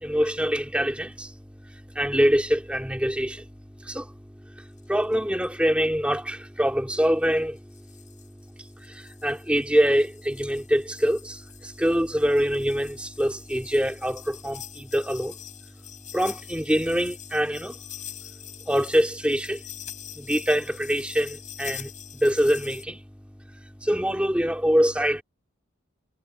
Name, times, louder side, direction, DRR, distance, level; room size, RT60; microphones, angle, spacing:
voice 1, 0.0-1.3 1.9-3.4 3.8-4.1 4.9-7.6 8.9-15.4 16.1-17.7 18.7-19.6 20.2-23.0 23.8-25.2, equal, 5° right, 2.3 m, -24 dB
sound 1, 4.8-4.9 5.1-5.2 5.4-5.5 7.0-7.1 7.7-22.8, left 11 dB, 40° left, 5.1 m, -44 dB
head